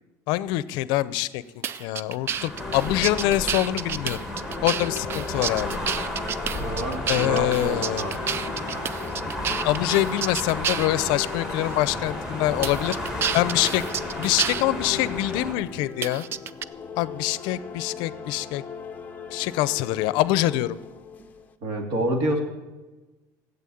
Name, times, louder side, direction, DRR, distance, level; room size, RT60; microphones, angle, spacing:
voice 1, 0.3-4.2 4.6-5.8 7.1-8.0 9.6-13.0 13.3-13.8 14.2-16.2 17.0-18.6 19.3-20.8, left 16 dB, 65° left, 17 dB, 0.6 m, -25 dB
sound 1, 1.6-11.0 11.6-11.8 12.6-14.6 16.0-16.6, right 8 dB, 30° right, 0.4 m, -30 dB
sound 2, 2.2-15.5, left 1 dB, 5° right, 1.9 m, -33 dB
sound 3, 2.6-21.5, left 6 dB, 20° left, 0.7 m, -38 dB
voice 2, 6.5-8.2 8.7-8.8 21.6-22.4, right 1 dB, 55° right, 3 dB, 2.5 m, -28 dB
15.0 x 8.2 x 8.5 m, 1.2 s
cardioid pair, 160°, 8 cm